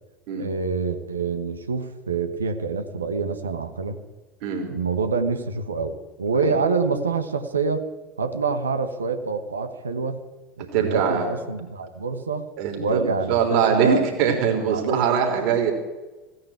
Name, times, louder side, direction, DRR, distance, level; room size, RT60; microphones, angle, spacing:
voice 1, 0.4-4.0 4.7-7.9 8.2-10.2 10.6-12.5 12.8-14.0 14.7-15.0, right 4 dB, 80° right, 7 dB, 1.2 m, -26 dB
voice 2, 10.7-11.3 12.6-15.7, right 7 dB, 55° right, 2 dB, 3.6 m, -22 dB
17.0 x 9.6 x 8.8 m, 1.1 s
figure-of-eight pair, 75°, 0 cm